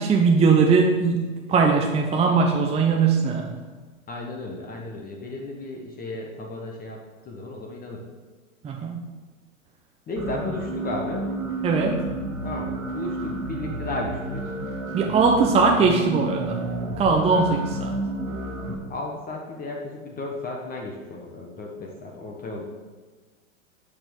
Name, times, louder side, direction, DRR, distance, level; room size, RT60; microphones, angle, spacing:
voice 1, 0.0-3.6 8.6-9.1 11.6-12.0 14.9-16.6 17.0-17.9, right 4 dB, 15° right, 1 dB, 0.8 m, -20 dB
voice 2, 4.1-7.0 7.2-8.0 10.1-11.3 12.4-14.5 18.9-22.6, left 2 dB, 20° left, 0 dB, 1.4 m, -34 dB
sound 1, 10.2-18.7, right 2 dB, 90° right, 2.5 m, -30 dB
10.5 x 6.2 x 6.3 m, 1.4 s
hypercardioid pair, 125°, 40 cm